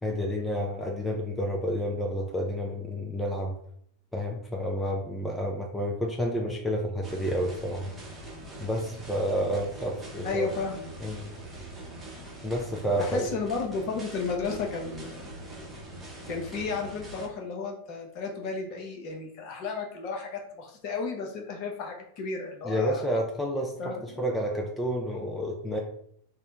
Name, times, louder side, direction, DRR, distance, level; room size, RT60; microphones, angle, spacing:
voice 1, 0.0-3.6 4.1-7.9 8.6-10.5 11.0-11.2 12.4-13.3 22.6-25.8, equal, 5° left, 0 dB, 0.4 m, -30 dB
sound 1, 7.0-17.3, right 1 dB, 10° right, 0.8 m, -43 dB
voice 2, 10.2-10.9 13.0-15.7 16.3-23.0 23.8-24.3, left 4 dB, 40° left, 1 dB, 0.7 m, -33 dB
3.3 x 2.0 x 2.8 m, 0.66 s
figure-of-eight pair, 90°, 0 cm